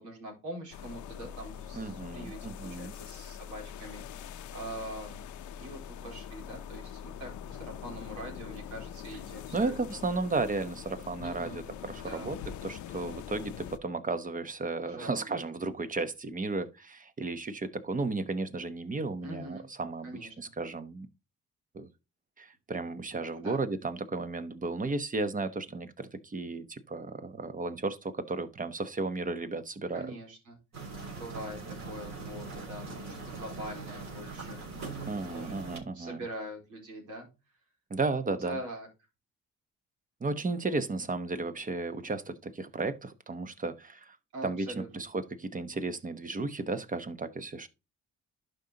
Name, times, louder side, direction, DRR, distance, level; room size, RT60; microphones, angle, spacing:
voice 1, 0.0-5.3 5.5-9.8 11.2-11.7 11.9-12.4 14.8-15.3 19.2-19.6 20.0-20.5 23.4-23.6 29.9-30.6 31.1-34.6 35.3-37.3 38.4-38.9 44.3-45.0, right 1 dB, 80° right, 3.9 m, -43 dB
sound 1, 0.7-13.8, left 9 dB, 75° left, 0.7 m, -43 dB
voice 2, 1.7-2.9 9.5-12.4 12.6-21.1 21.7-21.9 22.4-30.1 35.1-36.2 37.9-38.6 40.2-44.2 44.4-47.7, right 3 dB, 25° right, 1.0 m, -34 dB
sound 2, 30.7-35.8, right 3 dB, 60° right, 3.4 m, -41 dB
11.5 x 5.3 x 2.9 m
cardioid pair, 90°, 30 cm